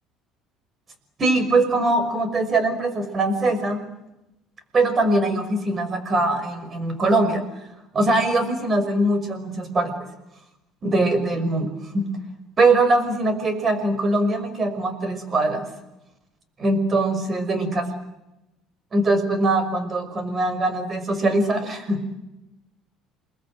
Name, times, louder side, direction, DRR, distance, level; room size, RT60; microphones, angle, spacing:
voice 1, 1.2-3.8 4.7-7.4 7.9-9.9 10.8-11.7 11.9-12.0 12.6-15.7 16.6-17.9 18.9-22.1, right 2 dB, 30° right, 11 dB, 5.9 m, -22 dB
29.5 x 21.0 x 9.2 m, 0.93 s
cardioid pair, 115°, 0 cm